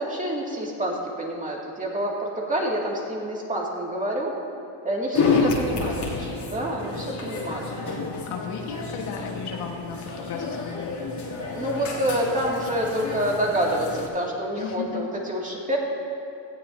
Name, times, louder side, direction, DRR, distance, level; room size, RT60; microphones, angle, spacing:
voice 1, 0.0-4.4 4.8-7.9 11.5-15.8, right 1 dB, 15° right, -3 dB, 2.4 m, -27 dB
sound 1, 5.1-14.1, left 4 dB, 50° left, 3.0 m, -29 dB
voice 2, 5.2-6.4 8.3-11.1 14.6-15.0, left 6 dB, 80° left, 2 dB, 1.6 m, -35 dB
18.0 x 14.0 x 2.8 m, 2.8 s
cardioid pair, 115°, 50 cm